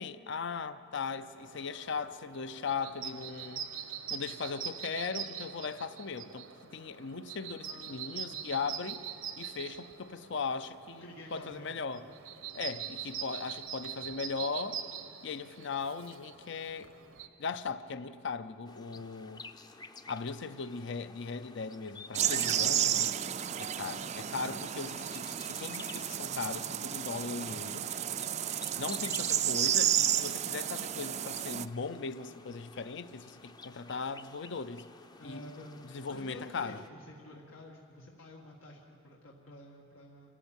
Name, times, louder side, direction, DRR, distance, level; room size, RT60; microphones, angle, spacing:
voice 1, 0.0-3.6 4.1-6.5 6.7-9.0 9.4-11.0 11.3-12.1 12.5-14.8 15.2-16.9 17.4-19.4 20.1-22.9 23.6-27.9 28.8-34.9 35.2-35.4 35.9-36.8, left 5 dB, 60° left, 0.6 m, -38 dB
sound 1, 1.4-17.3, right 8 dB, 90° right, 1.2 m, -43 dB
voice 2, 7.5-8.6 11.0-12.2 22.3-22.8 29.0-29.4 35.2-40.3, left 1 dB, 90° left, 1.8 m, -50 dB
sound 2, 18.6-36.9, left 4 dB, 20° left, 0.6 m, -52 dB
sound 3, 22.1-31.6, right 10 dB, 35° right, 0.4 m, -32 dB
27.5 x 13.5 x 9.0 m
head